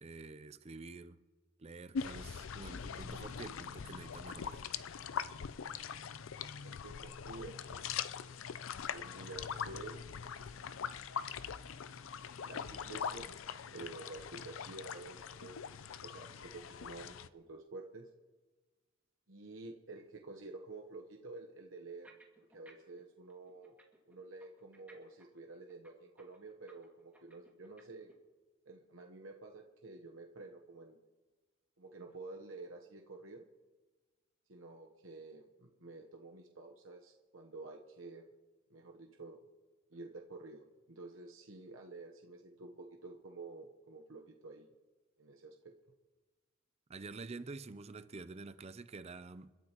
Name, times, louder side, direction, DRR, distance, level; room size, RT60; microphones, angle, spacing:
voice 1, 0.0-1.2 1.6-4.6 46.9-49.5, right 3 dB, 30° right, 0.5 m, -48 dB
sound 1, 1.9-17.3, left 7 dB, 75° left, 0.5 m, -42 dB
voice 2, 6.6-7.8 8.9-10.0 12.4-13.3 13.7-18.1 19.3-22.1 22.5-23.7 24.1-28.1 28.7-31.0 31.8-33.4 34.5-38.3 38.7-39.4 39.9-44.7 45.2-45.7, right 3 dB, 75° right, 1.0 m, -50 dB
sound 2, 21.9-23.0 23.3-28.1, right 2 dB, 5° right, 2.2 m, -62 dB
29.5 x 12.5 x 3.0 m
head